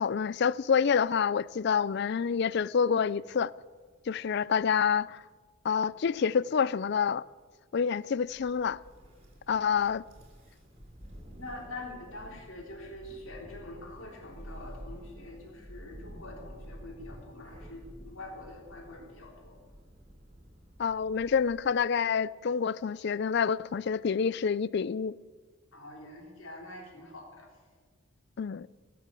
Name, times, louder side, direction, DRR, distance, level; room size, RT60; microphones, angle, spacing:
voice 1, 0.0-3.5 4.1-5.2 5.6-7.2 7.7-8.8 9.5-10.0 20.8-25.2 28.4-28.7, left 6 dB, 50° left, 0.3 m, -27 dB
Thunder, 8.2-21.9, equal, 30° right, 3.4 m, -50 dB
voice 2, 11.4-19.5 25.7-27.6, left 2 dB, 70° left, 3.7 m, -45 dB
20.0 x 7.6 x 8.5 m
head